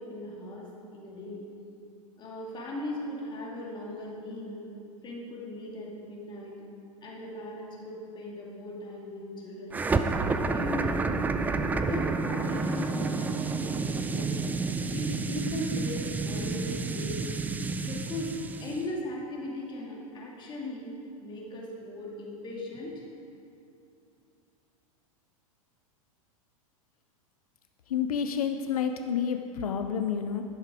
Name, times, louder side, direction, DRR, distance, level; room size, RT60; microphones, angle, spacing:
voice 1, 0.0-1.4 2.2-4.6 5.0-6.6 7.0-9.8 10.2-11.1 11.7-14.4 14.9-17.2 17.8-18.3 18.6-20.9 21.2-23.0, left 1 dB, 25° left, -3 dB, 2.3 m, -38 dB
sound 1, 9.7-18.8, right 4 dB, 10° right, 0.3 m, -30 dB
voice 2, 27.9-30.4, left 7 dB, 85° left, 6 dB, 0.6 m, -29 dB
11.5 x 6.7 x 4.8 m, 2.6 s
hypercardioid pair, 115°, 18 cm